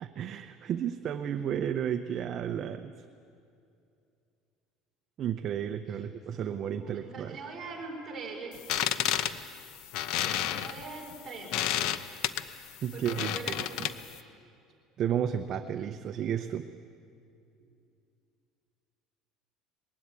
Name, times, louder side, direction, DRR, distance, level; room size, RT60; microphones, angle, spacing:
voice 1, 0.0-2.9 5.2-7.4 12.8-13.3 13.8-13.9 15.0-16.7, right 9 dB, 40° right, 8 dB, 0.7 m, -32 dB
voice 2, 6.7-9.1 10.2-11.6 12.9-13.7 17.6-17.7, right 4 dB, 25° right, -2 dB, 5.2 m, -43 dB
sound 1, 8.5-14.2, left 11 dB, 65° left, 0.8 m, -31 dB
20.5 x 16.0 x 9.7 m, 2.5 s
cardioid pair, 145°, 0 cm